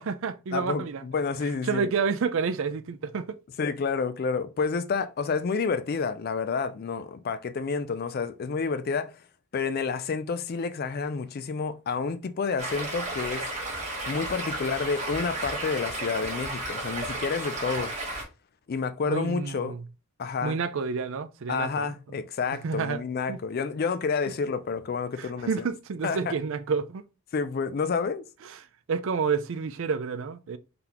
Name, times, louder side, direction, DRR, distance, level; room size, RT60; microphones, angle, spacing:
voice 1, 0.0-1.0 1.6-3.4 19.1-19.8 20.4-21.9 22.6-23.0 23.3-23.4 25.2-27.0 28.5-28.6 28.9-30.6, right 5 dB, 60° right, 0.4 m, -29 dB
voice 2, 0.5-1.9 3.6-9.2 9.5-13.5 14.1-17.9 18.7-19.8 20.2-20.6 21.5-25.5 26.0-26.4 27.3-28.3, left 5 dB, 45° left, 0.3 m, -29 dB
Stream, 12.6-18.2, right 2 dB, 30° right, 1.3 m, -33 dB
3.9 x 3.3 x 2.9 m
head